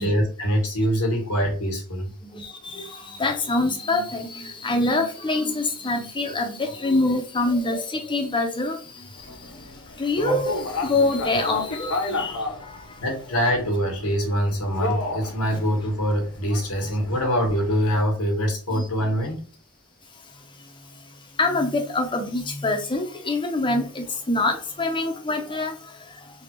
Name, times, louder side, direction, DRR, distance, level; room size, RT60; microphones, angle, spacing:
voice 1, 0.0-2.1 13.0-19.4, equal, 90° left, 1 dB, 1.3 m, -24 dB
voice 2, 2.3-9.1 10.0-12.8 16.8-16.9 18.7-18.9 21.4-25.7, left 2 dB, 20° left, 3 dB, 0.6 m, -25 dB
sound 1, 9.2-18.0, left 2 dB, 70° left, 0.6 m, -33 dB
3.4 x 2.4 x 3.0 m, 0.40 s
head